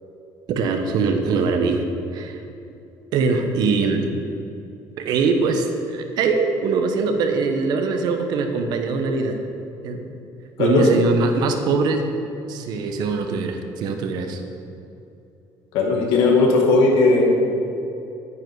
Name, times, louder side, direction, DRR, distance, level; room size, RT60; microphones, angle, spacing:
voice 1, 0.5-1.8 2.1-2.4 3.1-4.1 5.0-9.4 9.8-10.1 10.6-12.1 12.5-14.4, right 4 dB, 55° right, 6 dB, 1.1 m, -22 dB
voice 2, 15.7-17.4, left 3 dB, 85° left, -1 dB, 2.3 m, -17 dB
10.5 x 9.7 x 4.8 m, 2.7 s
cardioid pair, 170°, 8 cm